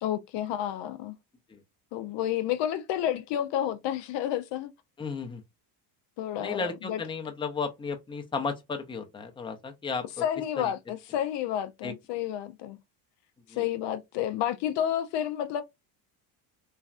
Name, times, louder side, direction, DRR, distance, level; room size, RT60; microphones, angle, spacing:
voice 1, 0.0-1.1 1.9-4.7 6.2-7.0 10.2-12.8 13.6-15.6, left 11 dB, 60° left, 0.5 m, -30 dB
voice 2, 5.0-5.4 6.4-10.2 11.8-11.9 13.5-13.7, left 4 dB, 10° left, 0.5 m, -34 dB
3.2 x 2.3 x 2.3 m
supercardioid pair, 90°, 50 cm